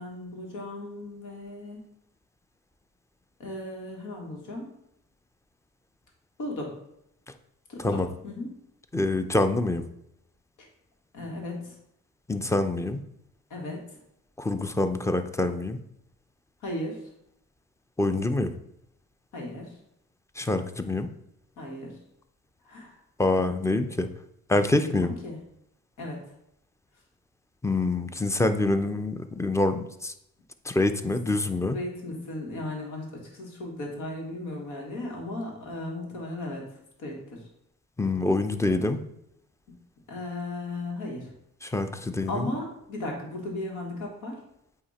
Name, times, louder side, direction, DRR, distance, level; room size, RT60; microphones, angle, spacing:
voice 1, 0.0-1.8 3.4-4.7 6.4-6.8 7.7-8.5 11.1-11.8 13.5-13.8 16.6-17.0 19.3-19.8 21.6-22.0 22.7-23.0 24.9-25.4 26.0-26.2 31.7-36.7 37.0-37.4 40.1-41.3 42.3-44.4, left 1 dB, 85° left, 1 dB, 1.8 m, -36 dB
voice 2, 8.9-9.8 12.3-13.0 14.4-15.8 18.0-18.5 20.4-21.1 23.2-24.1 24.5-25.1 27.6-30.1 30.7-31.8 38.0-39.0 41.6-42.5, left 2 dB, 10° left, 8 dB, 0.5 m, -26 dB
8.3 x 2.9 x 4.2 m, 0.78 s
cardioid pair, 90°, 30 cm